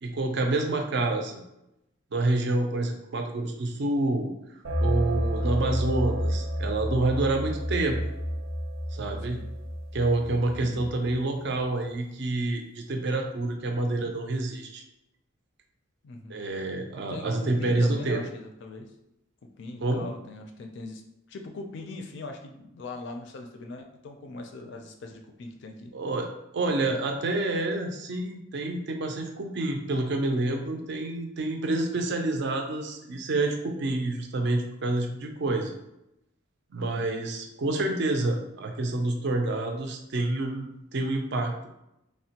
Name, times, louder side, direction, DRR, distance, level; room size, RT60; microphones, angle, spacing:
voice 1, 0.0-1.4 2.1-8.0 8.9-9.4 9.9-14.8 16.3-18.2 19.8-20.1 25.9-26.3 26.5-35.8 36.7-41.7, right 2 dB, 55° right, 3 dB, 0.4 m, -28 dB
sound 1, 4.6-11.2, equal, 90° right, 0.7 m, -30 dB
voice 2, 16.0-16.4 17.1-18.9 19.4-21.0 21.3-25.9 26.8-26.9 36.8-37.3, left 2 dB, 55° left, 4 dB, 0.4 m, -41 dB
3.3 x 2.1 x 2.8 m, 0.87 s
head